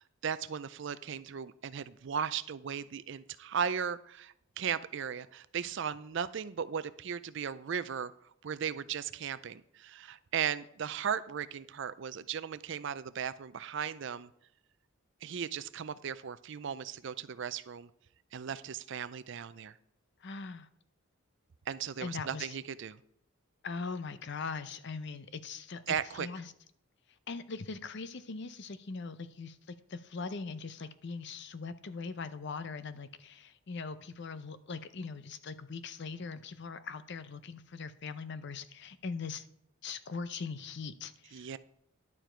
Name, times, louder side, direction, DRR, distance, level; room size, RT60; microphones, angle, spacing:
voice 1, 0.0-8.1 8.4-14.3 15.2-17.9 18.3-19.8 21.7-23.0 25.9-26.3 41.3-41.6, right 7 dB, 60° right, 15 dB, 0.4 m, -37 dB
voice 2, 20.2-20.7 22.0-22.5 23.6-26.5 27.3-39.4 39.8-41.6, left 4 dB, 55° left, 13 dB, 0.6 m, -41 dB
11.0 x 7.1 x 4.4 m, 0.70 s
head